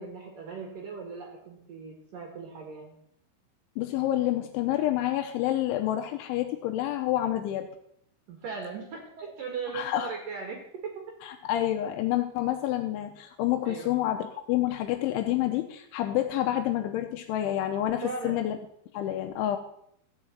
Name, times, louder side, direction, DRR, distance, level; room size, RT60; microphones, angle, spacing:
voice 1, 0.0-3.0 8.3-11.0 13.6-13.9 18.0-18.4, right 5 dB, 55° right, 1 dB, 2.6 m, -38 dB
voice 2, 3.8-7.7 9.7-10.1 11.2-18.6 18.9-19.6, left 13 dB, 85° left, 6 dB, 2.9 m, -28 dB
14.5 x 4.8 x 7.8 m, 0.73 s
omnidirectional pair, 5.9 m